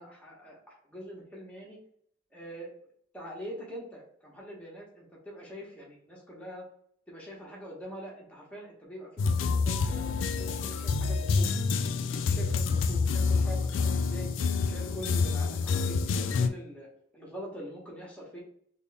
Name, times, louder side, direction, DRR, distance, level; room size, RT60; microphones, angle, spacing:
voice 1, 0.0-1.8 2.3-2.7 3.1-6.7 7.1-11.5 12.1-14.3 14.6-18.4, equal, 5° left, -4 dB, 1.0 m, -44 dB
sound 1, 9.2-16.5, left 4 dB, 85° left, 0.3 m, -27 dB
3.4 x 2.2 x 4.0 m, 0.65 s
head